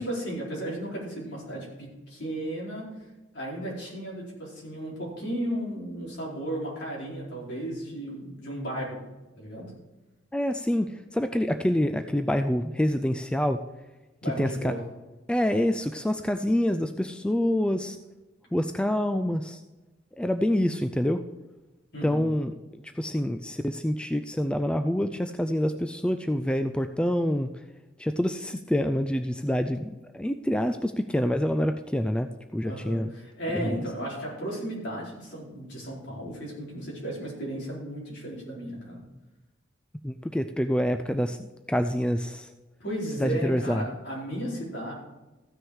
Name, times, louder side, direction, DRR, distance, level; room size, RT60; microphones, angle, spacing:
voice 1, 0.0-2.9 3.3-9.0 9.4-9.7 14.2-14.8 21.9-22.2 32.6-39.0 42.8-44.9, right 1 dB, 60° left, -5 dB, 4.3 m, -34 dB
voice 2, 10.3-13.6 14.4-14.7 15.3-18.0 18.5-19.6 20.2-21.2 22.0-27.5 28.0-33.1 33.5-33.8 40.0-41.4 41.7-42.5 43.2-43.8, equal, 5° left, 8 dB, 0.3 m, -26 dB
14.5 x 6.2 x 4.8 m, 1.1 s
head